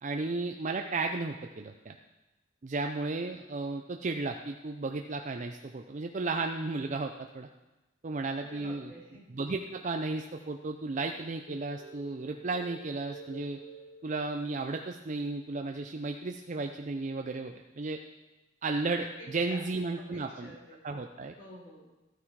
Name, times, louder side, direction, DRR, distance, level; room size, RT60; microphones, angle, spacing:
voice 1, 0.0-2.0 2.6-7.5 8.0-8.9 9.3-13.6 14.0-18.0 18.6-20.5 20.8-21.3, right 3 dB, 40° right, 4 dB, 0.5 m, -34 dB
voice 2, 8.4-9.2 19.2-19.6 19.9-21.0 21.3-21.9, right 1 dB, 50° left, -6 dB, 5.1 m, -50 dB
sound 1, 11.5-14.6, right 3 dB, 80° left, 2.7 m, -50 dB
13.0 x 9.3 x 4.7 m, 1.1 s
head